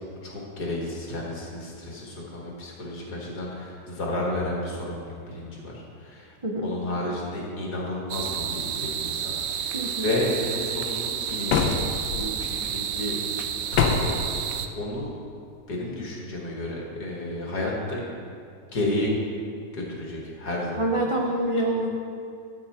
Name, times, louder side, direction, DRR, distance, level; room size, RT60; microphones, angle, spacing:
voice 1, 0.0-6.3 6.6-11.8 12.2-13.2 13.7-15.1 15.7-18.0 18.7-19.1 19.7-20.8 21.7-21.8, left 1 dB, 65° left, -3 dB, 2.3 m, -32 dB
voice 2, 6.4-6.8 9.7-10.1 20.7-21.9, right 1 dB, 45° right, -1 dB, 0.4 m, -26 dB
sound 1, 8.1-14.7, right 8 dB, 65° right, 0.9 m, -30 dB
sound 2, 11.5-12.2 13.7-14.3, left 6 dB, 90° left, 1.4 m, -23 dB
12.5 x 7.8 x 4.4 m, 2.5 s
omnidirectional pair, 1.8 m